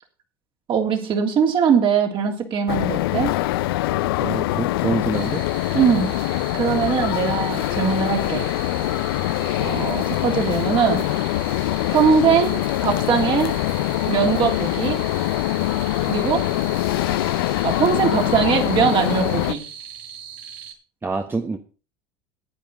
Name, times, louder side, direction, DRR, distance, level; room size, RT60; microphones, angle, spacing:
voice 1, 0.7-3.3 5.7-6.1 6.5-8.5 9.6-11.0 11.9-13.5 14.0-15.0 16.0-16.4 17.6-19.6, right 7 dB, 45° right, 3 dB, 3.1 m, -21 dB
sound 1, 2.7-19.5, left 16 dB, 80° left, 0.5 m, -23 dB
voice 2, 4.2-5.4 21.0-21.6, right 3 dB, 15° right, 6 dB, 1.1 m, -26 dB
sound 2, 5.1-20.7, right 7 dB, 75° right, 3.4 m, -39 dB
10.5 x 9.1 x 5.4 m, 0.35 s
hypercardioid pair, 90°, 12 cm